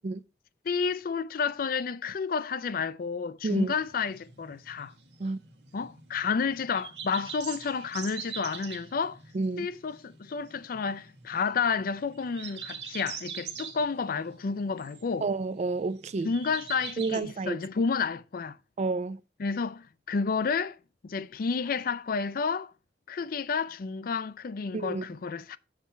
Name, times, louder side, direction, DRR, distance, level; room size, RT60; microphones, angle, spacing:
voice 1, 0.7-4.9 5.7-9.2 9.6-15.3 16.2-18.6 19.4-20.8 21.0-22.7 23.1-25.6, left 5 dB, 55° left, 0.4 m, -30 dB
sound 1, 3.4-17.2, right 7 dB, 75° right, 1.3 m, -44 dB
voice 2, 9.3-9.7 15.2-16.3 17.0-17.6 18.8-19.2 24.7-25.1, right 3 dB, 40° right, 0.4 m, -30 dB
7.3 x 4.3 x 5.6 m
head